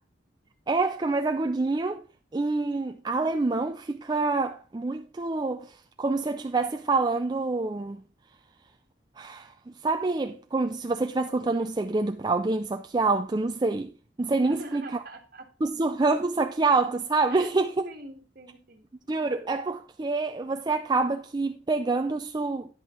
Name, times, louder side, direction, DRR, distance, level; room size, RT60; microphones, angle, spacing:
voice 1, 0.7-2.0 2.3-5.7 6.0-8.0 9.2-9.5 9.8-13.9 14.2-14.8 15.6-17.9 19.1-22.7, right 3 dB, 20° right, 0.4 m, -26 dB
voice 2, 14.4-15.5 17.3-17.5 17.8-18.8, right 2 dB, 50° right, 1.7 m, -44 dB
10.5 x 8.2 x 3.7 m
head